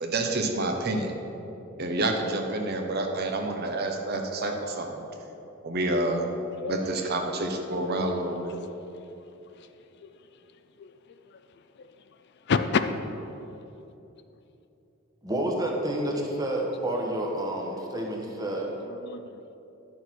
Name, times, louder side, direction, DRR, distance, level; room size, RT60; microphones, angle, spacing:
voice 1, 0.0-1.1 1.8-5.0 5.6-6.3 6.7-8.6, right 2 dB, 50° right, 3 dB, 0.8 m, -28 dB
voice 2, 12.5-12.8 18.9-19.6, left 5 dB, 50° left, 9 dB, 0.4 m, -29 dB
voice 3, 15.2-18.7, right 1 dB, 15° right, 0 dB, 1.2 m, -29 dB
11.0 x 6.5 x 4.5 m, 3.0 s
head